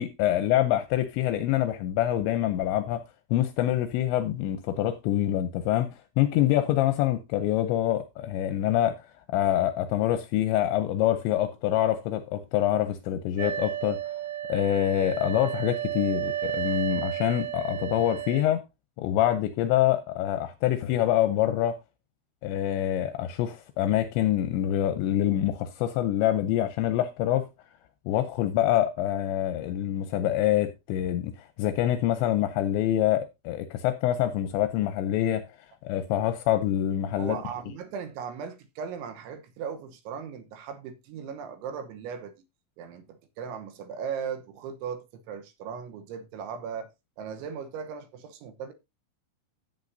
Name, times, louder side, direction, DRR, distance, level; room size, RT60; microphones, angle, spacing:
voice 1, 0.0-3.0 3.3-5.9 6.2-14.0 14.5-18.6 19.0-21.8 22.4-27.5 28.1-35.4 35.8-37.4, left 12 dB, 80° left, 2.6 m, -25 dB
sound 1, 13.4-18.4, right 11 dB, 60° right, 3.7 m, -32 dB
voice 2, 37.2-42.3 42.8-46.9 47.2-48.7, right 7 dB, 75° right, 3.2 m, -37 dB
14.0 x 8.0 x 2.6 m
omnidirectional pair, 5.8 m